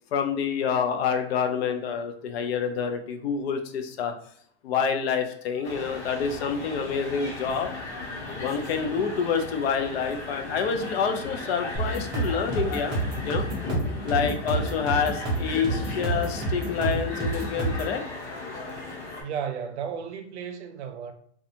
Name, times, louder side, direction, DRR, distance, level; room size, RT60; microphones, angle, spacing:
voice 1, 0.1-4.1 4.6-7.7 8.4-13.0 13.2-13.4 14.0-18.0, left 6 dB, 65° left, 0.5 m, -27 dB
sound 1, 5.6-19.2, left 3 dB, 80° left, 1.0 m, -36 dB
sound 2, 11.7-17.9, right 2 dB, 15° right, 0.5 m, -29 dB
voice 2, 19.2-21.1, right 7 dB, 80° right, 0.6 m, -34 dB
2.5 x 2.3 x 2.7 m
supercardioid pair, 165°, 34 cm